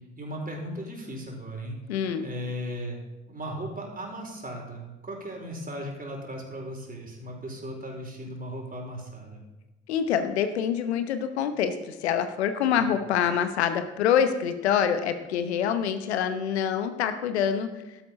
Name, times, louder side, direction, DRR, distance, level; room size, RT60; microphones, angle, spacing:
voice 1, 0.2-1.8 2.2-3.0 3.3-9.4 12.8-12.9, equal, 25° right, 0 dB, 4.6 m, -37 dB
voice 2, 1.9-2.3 9.9-17.7, left 8 dB, 85° left, 9 dB, 1.0 m, -26 dB
12.5 x 11.5 x 4.2 m, 1.0 s
hypercardioid pair, 45°, 32 cm